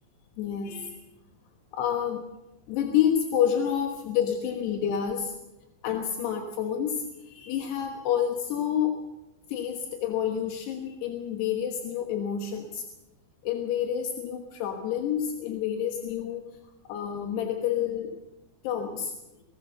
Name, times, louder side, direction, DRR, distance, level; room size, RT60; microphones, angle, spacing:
voice 1, 0.4-0.9 1.7-2.2 2.7-5.3 5.8-8.9 9.5-12.8 13.4-16.4 16.9-18.1 18.6-19.1, left 9 dB, 80° left, 3 dB, 3.5 m, -28 dB
20.0 x 20.0 x 6.8 m, 0.99 s
omnidirectional pair, 4.8 m